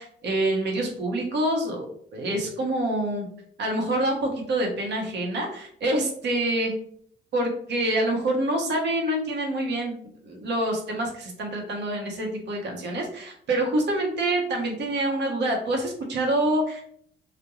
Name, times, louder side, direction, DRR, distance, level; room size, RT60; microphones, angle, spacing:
voice 1, 0.0-1.9 2.1-3.3 3.6-6.7 7.3-9.9 10.2-16.8, right 1 dB, 60° right, 2 dB, 0.8 m, -26 dB
2.3 x 2.1 x 2.9 m, 0.63 s
cardioid pair, 90°, 20 cm